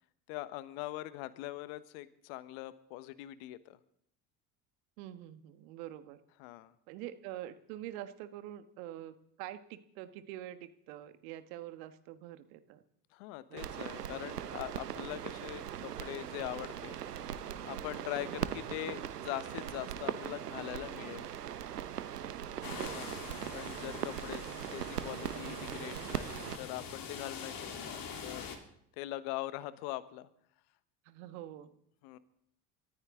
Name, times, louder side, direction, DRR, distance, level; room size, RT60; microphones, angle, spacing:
voice 1, 0.3-3.8 6.4-6.7 13.1-17.0 17.6-21.3 22.7-23.1 23.5-24.4 24.7-28.5 29.0-30.3 32.0-32.2, left 16 dB, 65° left, 15 dB, 1.3 m, -42 dB
voice 2, 5.0-6.2 6.9-12.8 13.5-13.8 18.1-18.5 22.7-23.1 24.3-24.4 31.0-31.7, right 13 dB, 65° right, 11 dB, 1.6 m, -46 dB
sound 1, 13.6-26.6, right 9 dB, 85° right, 1.0 m, -40 dB
sound 2, 22.6-28.6, left 5 dB, 50° left, 3.5 m, -45 dB
26.5 x 14.0 x 3.8 m, 0.70 s
hypercardioid pair, 65°, 46 cm